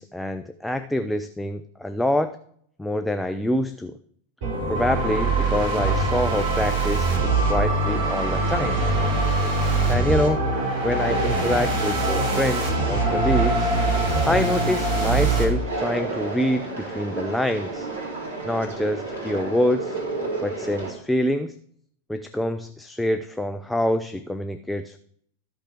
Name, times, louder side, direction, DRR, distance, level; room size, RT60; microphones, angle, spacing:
voice 1, 0.0-2.3 2.8-3.9 4.7-8.8 9.8-10.5 10.8-13.7 14.2-17.9 18.4-20.0 20.4-21.6 22.1-25.0, left 1 dB, 5° left, 9 dB, 0.4 m, -26 dB
sound 1, 4.4-15.4, right 2 dB, 50° right, 3.7 m, -23 dB
Conversation, 10.9-20.9, right 3 dB, 75° right, 2.9 m, -32 dB
13.5 x 5.5 x 4.5 m, 0.65 s
figure-of-eight pair, 90°, 0 cm